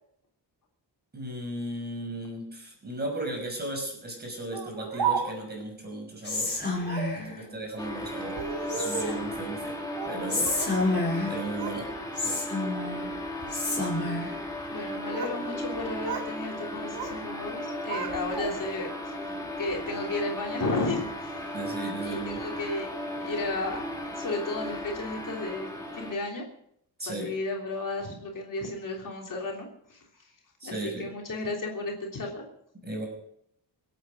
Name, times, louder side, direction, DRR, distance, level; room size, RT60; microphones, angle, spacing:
voice 1, 1.1-6.5 7.1-8.4 8.7-9.8 10.1-10.5 11.3-11.9 12.2-12.4 21.5-22.4 27.0-27.3 30.6-31.1 32.8-33.0, right 1 dB, 25° right, 1 dB, 6.0 m, -36 dB
Speech, 4.5-5.6 6.8-7.2 8.2-9.3 10.0-10.8 11.1-11.8 12.2-12.6 13.3-13.6 14.7-15.4 15.7-16.3 16.6-17.2 17.5-18.8, right 6 dB, 85° right, 2.6 m, -34 dB
Whispering, 6.2-7.3 8.7-9.4 10.3-11.5 12.2-13.1 13.5-14.4, left 2 dB, 25° left, 5.4 m, -29 dB
voice 2, 7.2-7.5 14.7-21.5 22.0-22.9 23.2-25.7 25.9-26.4 27.1-30.0 30.6-32.4, left 2 dB, 50° left, 0 dB, 3.4 m, -34 dB
sound 1, 7.8-26.1, equal, 10° left, 3.0 m, -36 dB
24.5 x 8.8 x 6.4 m, 0.72 s
wide cardioid pair, 170°, 41 cm